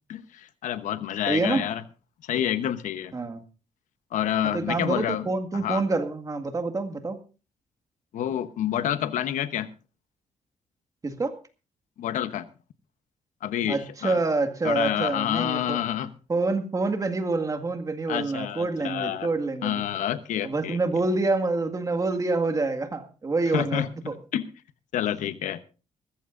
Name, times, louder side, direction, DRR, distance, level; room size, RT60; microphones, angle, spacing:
voice 1, 0.1-1.8 2.3-3.1 4.1-5.3 5.5-5.8 8.1-9.7 12.0-12.5 13.4-14.2 14.6-16.1 18.1-19.3 19.6-20.8 23.5-23.9 24.3-24.5 24.9-25.6, left 10 dB, 90° left, 1.0 m, -28 dB
voice 2, 1.3-1.6 3.1-3.4 4.5-7.2 11.0-11.3 13.7-15.8 16.3-19.8 20.4-24.2, right 3 dB, 25° right, 1.9 m, -27 dB
20.5 x 15.0 x 2.5 m
cardioid pair, 135°, 13 cm